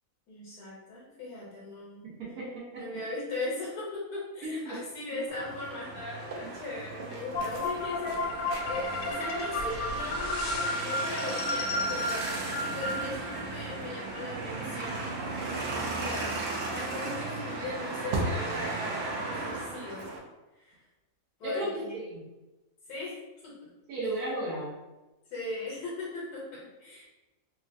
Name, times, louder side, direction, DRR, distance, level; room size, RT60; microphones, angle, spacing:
voice 1, 0.3-2.0 2.8-8.2 8.7-12.2 12.6-15.1 16.0-20.1 20.6-20.8 21.4-22.0 22.9-23.1 23.4-23.5 25.3-27.0, left 2 dB, 90° left, -6 dB, 1.3 m, -38 dB
voice 2, 2.0-2.8 4.4-4.8 6.4-6.5 21.4-22.2 23.9-24.7, right 1 dB, 85° right, -6 dB, 1.3 m, -34 dB
sound 1, 5.3-20.2, right 2 dB, 70° right, 0.9 m, -35 dB
sound 2, 7.3-13.4, left 2 dB, 70° left, 0.9 m, -33 dB
3.6 x 2.1 x 2.5 m, 1.1 s
omnidirectional pair, 1.6 m